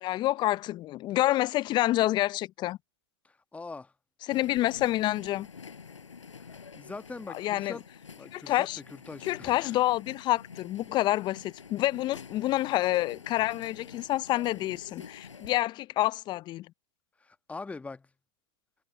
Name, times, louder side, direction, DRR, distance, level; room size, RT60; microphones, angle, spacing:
voice 1, 0.0-2.8 4.2-5.5 7.3-7.8 8.3-8.8 9.2-16.7, left 16 dB, 30° left, 0.5 m, -28 dB
voice 2, 3.5-3.9 6.5-7.8 8.2-9.7 17.2-18.1, left 3 dB, 10° left, 1.3 m, -42 dB
sound 1, 4.3-15.6, left 5 dB, 85° left, 5.2 m, -48 dB
hypercardioid pair, 105°, 15 cm